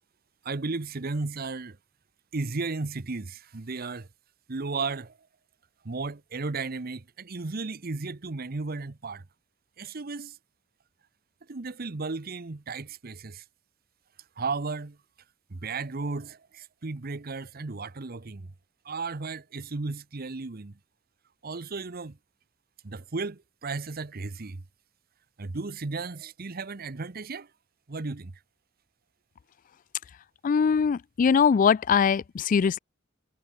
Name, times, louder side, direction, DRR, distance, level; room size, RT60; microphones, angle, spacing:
voice 1, 0.4-1.8 2.3-4.1 4.5-5.2 5.8-9.2 9.8-10.4 11.5-13.4 14.4-15.0 15.5-18.5 18.8-20.8 21.4-22.2 22.8-24.6 25.4-27.5 27.9-28.3, right 3 dB, 50° right, 0.9 m, -34 dB
voice 2, 30.4-32.8, left 6 dB, 40° left, 0.3 m, -22 dB
head